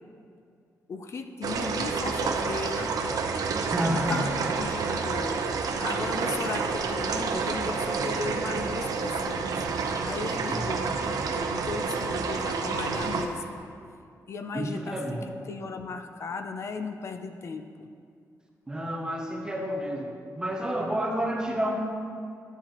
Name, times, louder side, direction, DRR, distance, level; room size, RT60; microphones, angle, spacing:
voice 1, 0.9-3.0 3.9-5.4 5.8-9.6 10.0-13.6 14.3-17.9, left 4 dB, 45° left, 7 dB, 0.4 m, -36 dB
sound 1, 1.4-13.3, right 4 dB, 75° right, 0.6 m, -29 dB
voice 2, 3.7-4.3 10.5-10.7 14.5-15.3 18.7-21.8, equal, 10° right, 0 dB, 0.7 m, -30 dB
9.8 x 8.8 x 2.9 m, 2.3 s
wide cardioid pair, 165°, 6 cm